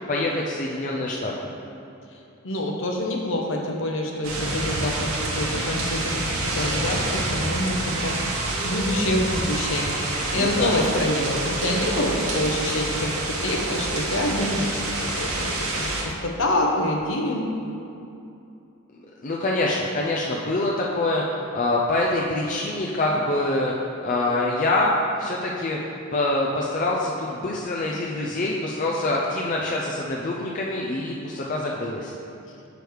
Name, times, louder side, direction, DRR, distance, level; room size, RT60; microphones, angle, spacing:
voice 1, 0.1-1.3 10.3-10.8 19.2-23.7 24.0-24.9 25.2-32.1, left 2 dB, 40° left, -3 dB, 0.5 m, -25 dB
voice 2, 2.4-6.3 6.6-8.4 8.6-17.5, left 1 dB, 65° left, 0 dB, 0.9 m, -26 dB
sound 1, 4.2-16.0, right 2 dB, 85° right, 1.0 m, -28 dB
sound 2, 6.8-12.0, right 4 dB, 35° right, 0.3 m, -36 dB
6.3 x 5.1 x 4.7 m, 2.7 s
head